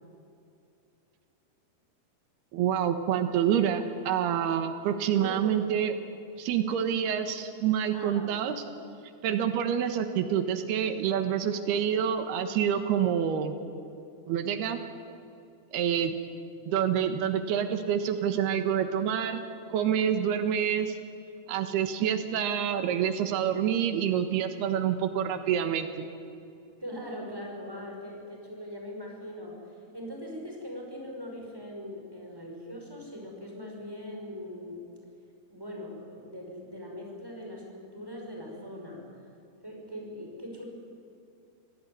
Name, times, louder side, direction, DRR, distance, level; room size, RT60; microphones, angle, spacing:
voice 1, 2.5-6.0 6.4-8.6 9.2-13.5 14.3-14.8 15.7-16.1 16.7-19.4 19.7-21.0 21.5-26.1, right 9 dB, 85° right, 8 dB, 3.4 m, -27 dB
voice 2, 5.1-5.6 7.9-8.3 26.8-34.8 35.5-39.0 39.6-40.6, equal, 5° right, -1 dB, 5.4 m, -41 dB
26.5 x 17.5 x 9.8 m, 2.5 s
omnidirectional pair, 4.5 m